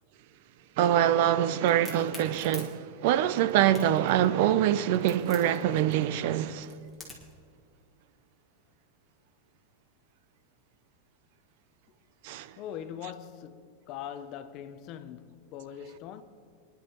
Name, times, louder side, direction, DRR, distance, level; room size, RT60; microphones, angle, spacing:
voice 1, 0.8-6.7 12.2-12.5, right 11 dB, 45° right, 0.4 m, -25 dB
Crack, 1.7-7.4, left 2 dB, ahead, 1.7 m, -47 dB
voice 2, 12.6-16.2, left 9 dB, 30° left, 0.6 m, -42 dB
23.0 x 10.5 x 3.0 m
supercardioid pair, 170°, 0 cm